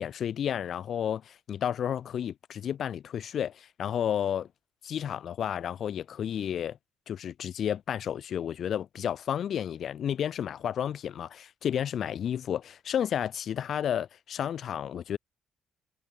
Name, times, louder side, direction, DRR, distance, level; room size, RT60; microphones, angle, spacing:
voice 1, 0.0-4.5 4.8-6.8 7.1-15.2, left 9 dB, 65° left, 1.3 m, -31 dB
cardioid pair, 90°, 0 cm